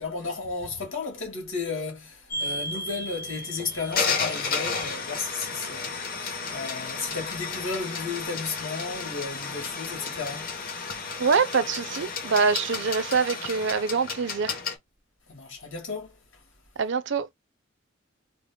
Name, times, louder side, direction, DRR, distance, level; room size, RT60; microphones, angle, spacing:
voice 1, 0.0-10.6 15.3-16.2, left 4 dB, 85° left, 2.0 m, -34 dB
sound 1, 2.3-14.8, left 4 dB, 45° left, 0.9 m, -32 dB
voice 2, 11.2-14.5 16.8-17.3, right 5 dB, 65° right, 0.5 m, -25 dB
3.9 x 2.0 x 3.6 m
head